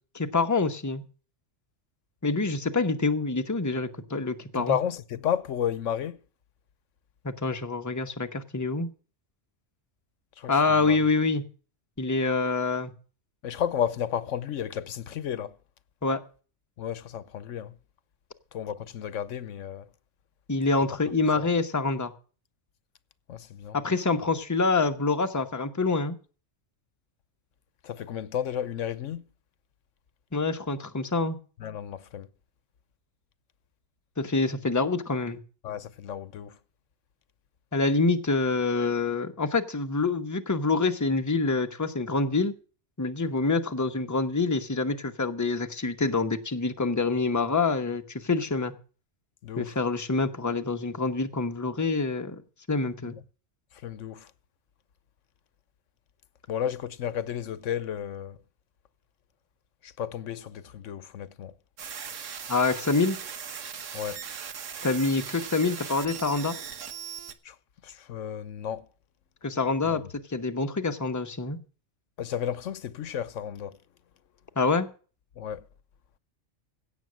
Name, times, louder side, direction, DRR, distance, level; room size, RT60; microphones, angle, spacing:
voice 1, 0.1-1.0 2.2-4.8 7.2-8.9 10.5-11.4 12.0-12.9 16.0-16.2 20.5-22.1 23.7-26.2 30.3-31.4 34.2-35.4 37.7-42.5 43.0-48.7 49.6-52.4 52.7-53.2 62.5-63.2 64.8-66.5 69.4-70.0 70.3-71.6 74.6-74.9, left 3 dB, 15° left, 0.9 m, -26 dB
voice 2, 4.6-6.2 10.4-11.0 13.4-15.6 16.8-17.8 18.5-19.9 21.4-21.5 23.3-23.8 27.8-29.2 31.6-32.3 35.6-36.6 49.4-49.8 53.0-53.1 53.8-54.3 56.5-58.4 59.8-61.5 63.9-64.2 67.4-67.6 67.8-68.9 69.8-70.1 72.2-73.8 75.4-75.7, left 9 dB, 85° left, 1.1 m, -32 dB
sound 1, 61.8-67.3, right 7 dB, 90° right, 1.4 m, -39 dB
16.5 x 7.1 x 6.3 m
omnidirectional pair, 1.3 m